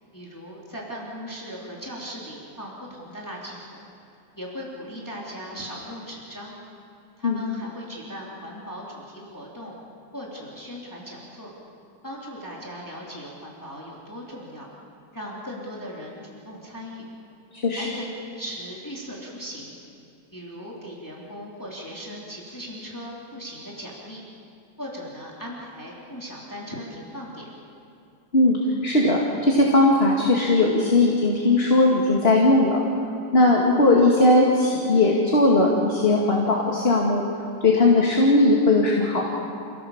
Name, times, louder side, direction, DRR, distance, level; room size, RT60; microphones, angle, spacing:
voice 1, 0.1-3.8 4.3-6.5 7.2-9.8 10.1-11.5 12.0-14.7 15.1-17.0 17.7-18.1 18.3-19.7 20.3-24.2 24.8-27.5, equal, 10° left, -4 dB, 3.3 m, -38 dB
voice 2, 17.5-17.9 28.3-28.6 28.8-32.8 33.3-37.3 37.6-39.2, left 2 dB, 35° left, -2 dB, 2.4 m, -18 dB
28.5 x 17.0 x 7.3 m, 2.6 s
omnidirectional pair, 1.8 m